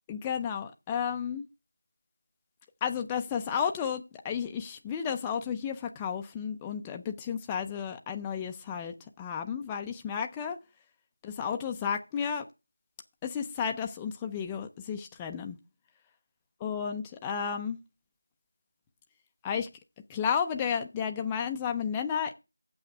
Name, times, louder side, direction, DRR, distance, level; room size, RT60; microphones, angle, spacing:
voice 1, 0.1-1.4 2.8-10.6 11.2-12.4 13.2-15.6 16.6-17.8 19.4-19.7 20.1-22.3, left 7 dB, 10° left, 0.4 m, -32 dB
7.8 x 5.8 x 6.6 m
figure-of-eight pair, 170°, 0 cm